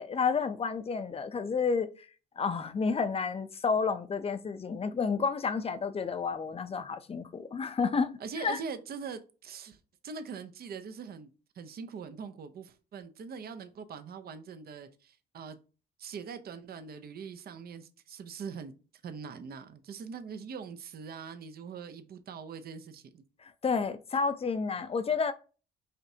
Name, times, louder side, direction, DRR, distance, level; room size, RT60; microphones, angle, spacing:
voice 1, 0.0-1.9 2.4-8.6 23.4-25.3, left 5 dB, 30° left, 0.5 m, -30 dB
voice 2, 8.2-11.3 11.6-15.6 16.0-18.7 19.0-23.2, right 6 dB, 50° right, 0.6 m, -42 dB
5.0 x 2.7 x 2.7 m
cardioid pair, 90°, 20 cm